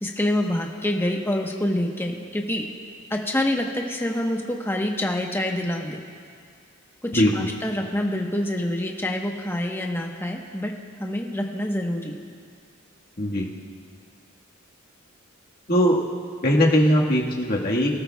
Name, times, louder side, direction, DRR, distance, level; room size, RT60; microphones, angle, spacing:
voice 1, 0.0-2.6 3.1-6.0 7.0-10.7 11.0-12.2, left 1 dB, 10° left, 1 dB, 1.0 m, -26 dB
voice 2, 7.1-7.5 13.2-13.5 15.7-16.0 16.4-17.9, equal, 45° left, -3 dB, 1.6 m, -20 dB
24.5 x 13.0 x 2.3 m, 2.1 s
head